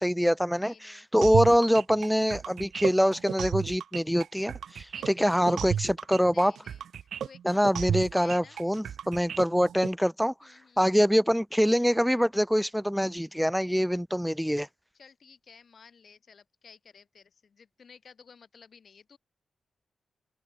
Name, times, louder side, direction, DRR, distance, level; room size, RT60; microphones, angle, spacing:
voice 1, 0.0-6.5 7.4-14.7, equal, ahead, 0.9 m, -25 dB
voice 2, 0.6-1.1 4.9-5.8 6.3-8.6 10.4-10.9 14.9-19.2, left 6 dB, 50° left, 6.8 m, -54 dB
sound 1, 1.2-9.9, right 9 dB, 85° right, 3.9 m, -33 dB
open air
wide cardioid pair, 130°, 0 cm